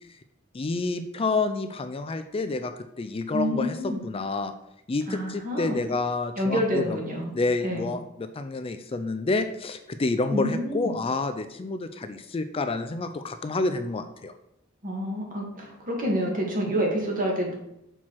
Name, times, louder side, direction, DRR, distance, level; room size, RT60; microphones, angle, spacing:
voice 1, 0.5-3.8 4.0-4.5 4.9-7.0 7.3-14.3, left 3 dB, 30° left, 9 dB, 0.4 m, -29 dB
voice 2, 3.3-4.0 5.1-5.8 6.4-7.3 7.6-7.9 10.3-10.9 14.8-17.5, equal, 45° right, -1 dB, 2.1 m, -28 dB
6.3 x 4.6 x 5.8 m, 0.81 s
head